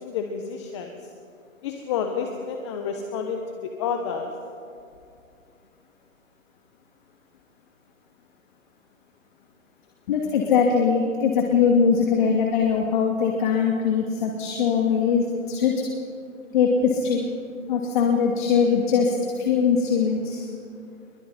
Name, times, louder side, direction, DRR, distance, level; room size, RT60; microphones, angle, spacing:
voice 1, 0.0-0.9 1.6-3.4 3.8-4.3, left 6 dB, 20° left, 4 dB, 1.1 m, -29 dB
voice 2, 10.1-15.7 16.5-17.2 17.7-19.1 19.4-20.5, left 6 dB, 35° left, 0 dB, 2.5 m, -21 dB
29.0 x 22.5 x 4.3 m, 2.5 s
hypercardioid pair, 155°, 40 cm